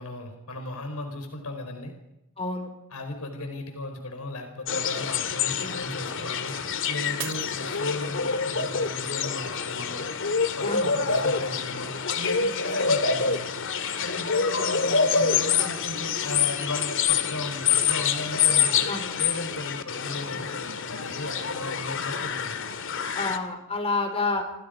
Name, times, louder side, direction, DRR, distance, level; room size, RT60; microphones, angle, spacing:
voice 1, 0.0-1.9 2.9-6.5 6.9-10.0 10.6-11.9 12.1-13.5 14.0-18.9 19.2-22.6, left 2 dB, 80° left, 5 dB, 4.6 m, -36 dB
voice 2, 2.4-2.7 5.6-5.9 10.6-10.9 18.9-19.1 23.1-24.4, left 3 dB, 25° left, 5 dB, 4.8 m, -29 dB
sound 1, 4.7-23.4, left 6 dB, 60° left, 2.1 m, -26 dB
Shatter, 7.2-8.5 9.0-9.5 10.0-10.1, right 9 dB, 60° right, 3.3 m, -40 dB
29.0 x 27.0 x 5.2 m, 0.88 s
head